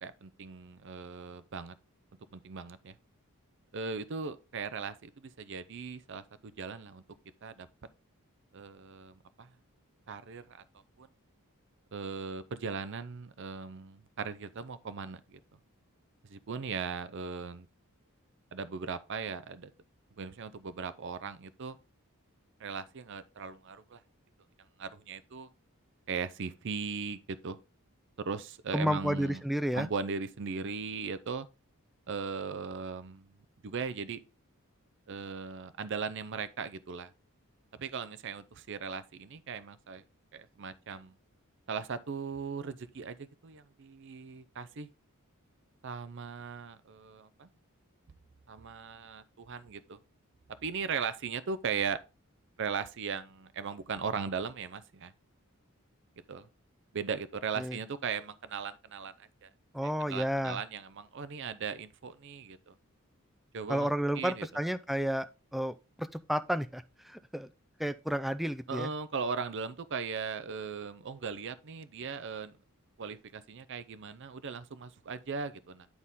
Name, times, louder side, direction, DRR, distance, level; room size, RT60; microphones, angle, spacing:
voice 1, 0.0-1.8 2.3-2.9 3.7-5.1 5.4-7.0 7.4-7.7 8.5-9.5 10.1-10.6 11.0-11.1 11.9-15.4 16.3-17.7 18.5-19.7 20.2-21.8 22.6-24.0 24.8-25.5 26.1-27.6 28.2-29.4 29.7-31.5 32.1-33.3 33.6-34.2 35.1-37.1 37.8-40.0 40.3-41.1 41.7-44.9 45.8-47.5 48.5-50.0 50.6-52.0 52.6-55.1 56.3-56.5 56.9-59.5 60.1-62.7 63.5-63.9 64.1-64.5 68.7-72.5 73.0-75.9, right 5 dB, 55° right, 0.5 m, -38 dB
voice 2, 28.7-29.9 57.6-57.8 59.7-60.6 63.7-67.5 67.8-68.9, equal, ahead, 0.3 m, -31 dB
9.5 x 4.1 x 3.6 m
head